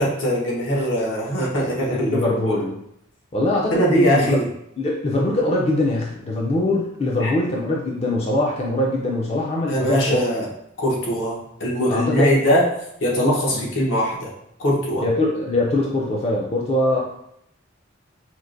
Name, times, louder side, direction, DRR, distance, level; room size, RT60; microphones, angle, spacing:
voice 1, 0.0-2.2 2.5-2.6 3.7-4.5 7.2-7.3 9.7-10.5 10.8-12.7 13.0-14.3 14.6-15.0, equal, 75° left, -3 dB, 0.9 m, -21 dB
voice 2, 1.9-2.8 3.3-4.4 4.8-10.2 11.9-12.5 13.5-13.6 15.0-17.0, left 2 dB, 30° left, -2 dB, 0.4 m, -22 dB
4.4 x 2.1 x 2.5 m, 0.77 s
head